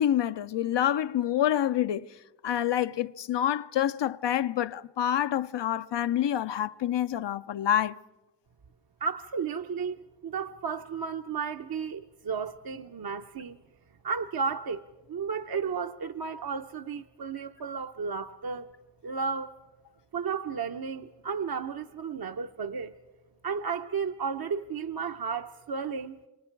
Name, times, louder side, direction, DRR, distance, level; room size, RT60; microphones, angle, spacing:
voice 1, 0.0-2.1 2.4-8.0, left 10 dB, 85° left, 0.6 m, -27 dB
voice 2, 9.0-13.6 14.0-14.8 15.1-18.7 19.0-19.5 20.1-22.9 23.4-26.2, right 5 dB, 60° right, 0.8 m, -33 dB
28.0 x 26.0 x 4.6 m
cardioid pair, 50°, 41 cm